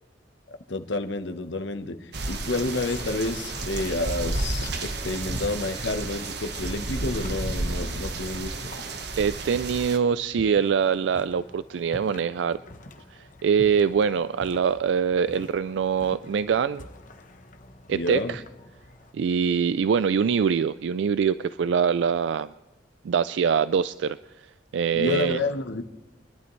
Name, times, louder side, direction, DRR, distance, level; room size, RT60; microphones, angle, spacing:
voice 1, 0.7-8.7 17.9-18.4 24.9-25.8, left 2 dB, 85° left, 7 dB, 1.0 m, -30 dB
sound 1, 2.1-10.0, right 2 dB, 65° right, 1.3 m, -32 dB
sound 2, 2.7-19.1, left 2 dB, 45° left, 0.9 m, -46 dB
voice 2, 9.2-12.6 13.1-16.9 17.9-18.4 19.1-22.5 23.0-25.4, right 6 dB, 80° right, 14 dB, 0.3 m, -24 dB
24.5 x 11.5 x 3.2 m, 1.1 s
head